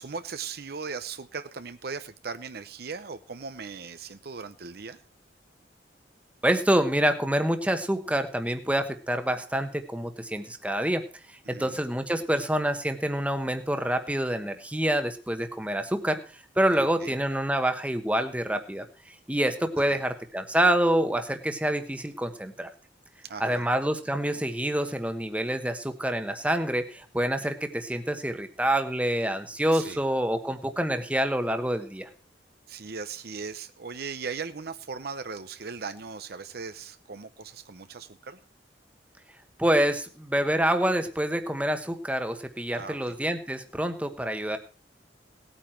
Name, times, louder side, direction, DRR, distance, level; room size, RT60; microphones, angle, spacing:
voice 1, 0.0-5.0 11.5-11.8 16.7-17.1 19.9-20.0 23.2-23.6 29.7-30.0 32.7-38.4 42.7-43.2, right 5 dB, 60° right, 11 dB, 0.7 m, -38 dB
voice 2, 6.4-11.0 11.5-16.2 16.6-18.8 19.3-22.7 23.4-32.1 39.6-44.6, right 1 dB, 5° right, 7 dB, 1.1 m, -27 dB
18.0 x 8.9 x 4.5 m, 0.36 s
head